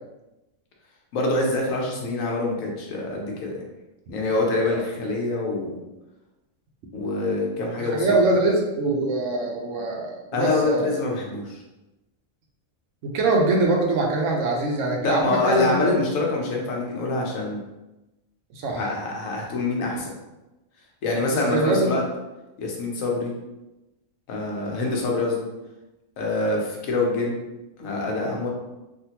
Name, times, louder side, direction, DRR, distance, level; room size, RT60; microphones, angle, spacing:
voice 1, 1.1-3.6 4.1-5.8 6.9-8.1 10.3-11.6 15.0-17.6 18.7-20.1 21.0-22.0 22.6-23.3 24.3-25.5 26.2-27.4 27.8-28.5, left 2 dB, 80° left, -1 dB, 1.2 m, -25 dB
voice 2, 7.8-10.9 13.0-16.2 18.5-18.9 21.3-21.9, right 2 dB, 70° right, 0 dB, 1.0 m, -23 dB
3.5 x 2.5 x 2.8 m, 1.0 s
omnidirectional pair, 1.4 m